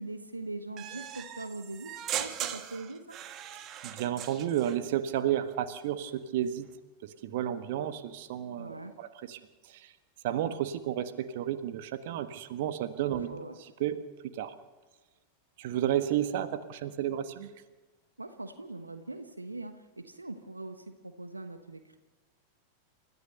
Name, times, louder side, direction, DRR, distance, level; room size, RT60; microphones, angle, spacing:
voice 1, 0.0-3.2 8.6-8.9 13.0-13.6 18.2-22.0, right 2 dB, 80° right, 9 dB, 1.2 m, -42 dB
sound 1, 0.8-4.8, right 10 dB, 35° right, 1.5 m, -39 dB
voice 2, 3.5-6.7 7.0-9.4 9.7-9.9 10.2-13.3 13.8-14.0 14.3-14.5 15.6-17.5, right 11 dB, 50° right, 10 dB, 1.5 m, -32 dB
29.5 x 14.0 x 6.8 m, 1.3 s
figure-of-eight pair, 90°, 0 cm